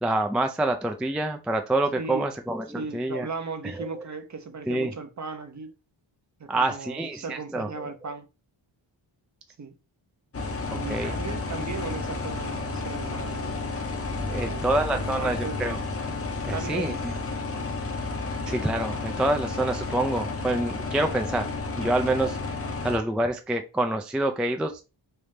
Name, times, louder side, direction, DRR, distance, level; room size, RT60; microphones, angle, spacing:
voice 1, 0.0-3.3 3.8-3.9 4.7-4.9 6.5-7.9 10.9-11.1 14.3-15.8 16.4-17.2 18.5-21.5 21.8-22.4 22.8-24.8, right 2 dB, ahead, 0.3 m, -27 dB
voice 2, 2.0-2.3 2.7-5.7 6.4-8.3 9.6-9.7 10.7-13.6 14.3-15.6 16.5-17.0 17.5-17.7, right 4 dB, 40° right, 0.7 m, -37 dB
sound 1, 10.3-23.0, left 3 dB, 30° left, 0.7 m, -32 dB
3.4 x 2.7 x 3.1 m
cardioid pair, 65°, 47 cm